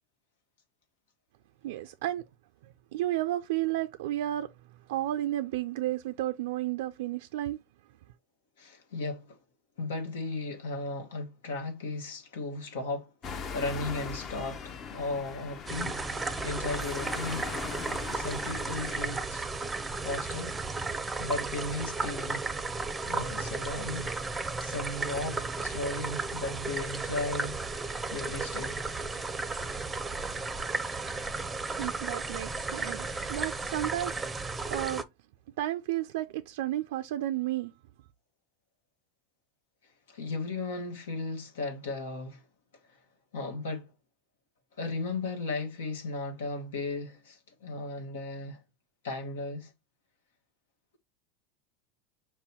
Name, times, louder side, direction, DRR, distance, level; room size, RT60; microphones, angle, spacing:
voice 1, 1.6-2.2 2.9-4.5 4.9-7.6 31.8-34.3 34.7-35.0 35.6-37.7, right 14 dB, 75° right, 0.4 m, -32 dB
voice 2, 8.6-9.4 9.8-17.5 18.1-19.5 20.0-20.6 21.2-22.5 23.1-24.1 24.6-27.6 28.1-28.8 40.1-42.4 43.3-43.9 44.8-48.6 49.0-49.7, left 3 dB, 85° left, 1.1 m, -36 dB
sound 1, 13.2-19.1, left 6 dB, 35° left, 0.7 m, -40 dB
sound 2, 15.7-35.0, right 3 dB, 15° right, 0.6 m, -34 dB
5.5 x 2.2 x 4.2 m
supercardioid pair, 115°, 0 cm